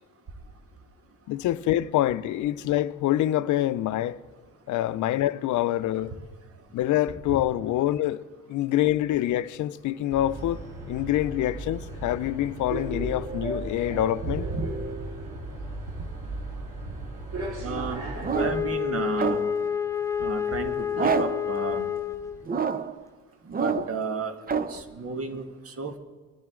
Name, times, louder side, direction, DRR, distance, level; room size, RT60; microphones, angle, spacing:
voice 1, 1.3-4.2 4.7-6.1 6.7-8.2 8.5-10.6 10.9-14.4, left 13 dB, 75° left, 0.6 m, -26 dB
sound 1, 10.1-18.7, right 2 dB, 85° right, 2.4 m, -36 dB
voice 2, 14.2-14.7 17.6-18.1 18.4-19.4 20.2-21.9 23.5-26.0, right 4 dB, 50° right, 1.6 m, -33 dB
sound 2, 18.2-18.8 19.2-19.7 20.9-21.5 22.5-23.0 23.5-24.0 24.5-24.8, right 6 dB, 30° right, 0.6 m, -27 dB
Wind instrument woodwind instrument, 18.3-22.5, left 8 dB, 10° left, 0.4 m, -29 dB
21.5 x 10.5 x 3.7 m
cardioid pair, 90°, 30 cm